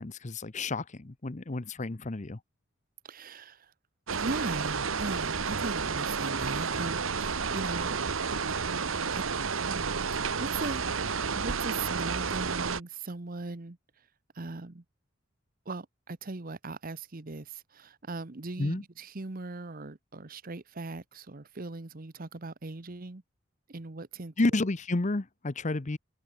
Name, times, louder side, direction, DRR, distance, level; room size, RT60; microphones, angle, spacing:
voice 1, 0.0-2.4 18.6-18.8 24.4-26.0, left 2 dB, 35° left, 0.8 m, -30 dB
voice 2, 3.0-3.7 4.1-8.0 8.8-9.2 9.7-10.9 11.3-13.8 14.3-14.8 15.6-23.2 23.7-24.3, right 3 dB, 45° right, 1.0 m, -39 dB
sound 1, 4.1-12.8, right 5 dB, 85° right, 1.2 m, -31 dB
head